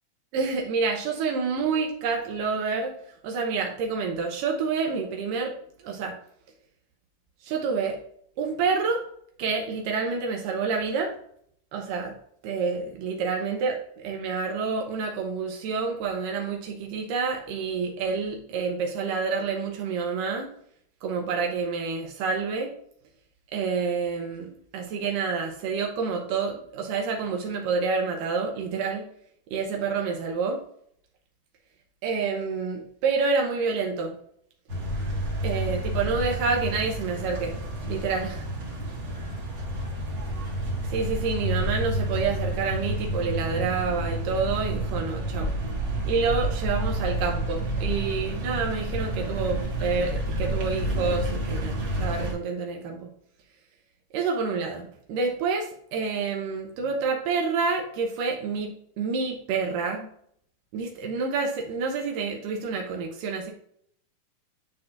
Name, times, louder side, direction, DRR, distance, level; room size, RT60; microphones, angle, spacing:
voice 1, 0.3-2.9 3.2-5.5 5.8-6.2 7.4-8.0 8.4-9.0 9.4-11.1 11.7-12.1 12.4-20.5 21.0-22.7 23.5-29.1 29.5-30.6 32.0-34.2 35.4-37.6 37.9-38.5 40.9-45.5 46.0-53.1 54.1-58.7 59.0-60.1 60.7-63.5, right 4 dB, 85° right, 1 dB, 2.5 m, -28 dB
sound 1, 34.7-52.3, right 1 dB, 40° right, 1.6 m, -29 dB
9.2 x 4.4 x 2.5 m, 0.66 s
omnidirectional pair, 3.8 m